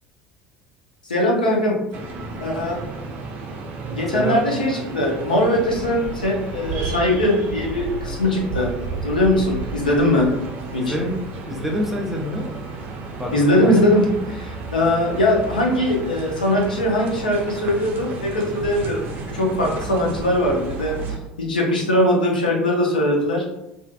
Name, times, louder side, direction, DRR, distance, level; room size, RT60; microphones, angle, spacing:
voice 1, 1.1-1.8 2.4-2.8 3.9-8.7 9.0-10.3 10.7-10.9 13.3-19.1 19.3-20.9 21.4-23.4, left 1 dB, 80° left, -1 dB, 0.5 m, -20 dB
sound 1, 1.9-21.2, right 4 dB, 45° right, 0.4 m, -32 dB
voice 2, 4.1-4.4 10.8-12.5 13.2-13.8, left 1 dB, 5° right, -1 dB, 0.7 m, -26 dB
2.5 x 2.4 x 2.3 m, 0.90 s
figure-of-eight pair, 65°, 5 cm